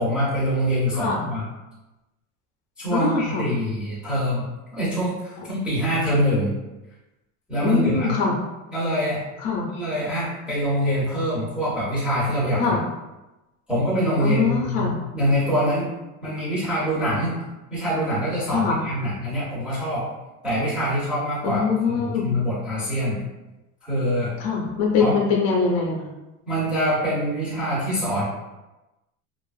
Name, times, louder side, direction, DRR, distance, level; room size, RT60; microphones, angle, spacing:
voice 1, 0.0-1.4 2.8-6.5 7.5-8.1 8.7-9.2 9.7-12.8 13.7-15.9 16.2-17.4 17.7-20.1 20.4-21.6 21.9-23.2 23.8-24.3 25.0-25.1 26.5-28.2, equal, 5° right, -10 dB, 0.3 m, -24 dB
voice 2, 2.9-3.5 7.6-8.4 9.4-9.7 12.6-12.8 14.2-14.9 18.5-18.8 21.4-22.3 24.4-26.1, left 5 dB, 60° left, -1 dB, 0.6 m, -23 dB
2.5 x 2.4 x 2.4 m, 1.0 s
cardioid pair, 175°, 40 cm